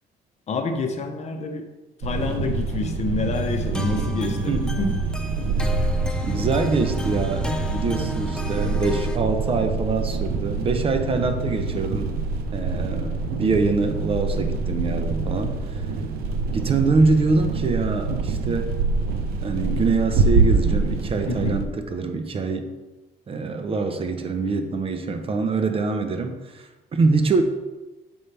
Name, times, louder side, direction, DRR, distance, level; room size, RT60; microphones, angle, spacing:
voice 1, 0.5-1.6 2.0-5.0 11.9-12.0 16.3-16.4 21.3-21.6, left 3 dB, 45° left, 5 dB, 0.8 m, -28 dB
sound 1, 2.0-21.6, right 4 dB, 85° right, 0.6 m, -25 dB
sound 2, 3.3-9.2, left 1 dB, 5° left, 0.7 m, -31 dB
voice 2, 4.3-4.8 5.5-5.7 6.0-12.1 12.5-15.8 16.5-18.7 19.4-22.7 23.3-27.4, right 3 dB, 35° right, 7 dB, 0.7 m, -24 dB
7.0 x 5.4 x 3.4 m, 1.1 s
cardioid pair, 110°, 16 cm